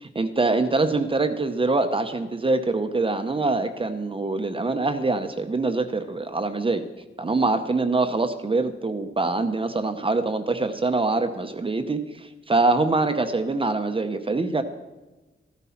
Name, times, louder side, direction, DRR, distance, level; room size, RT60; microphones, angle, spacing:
voice 1, 0.0-6.8 7.2-14.6, right 3 dB, 25° right, 7 dB, 0.8 m, -24 dB
14.0 x 12.5 x 5.7 m, 1.1 s
wide cardioid pair, 160°, 20 cm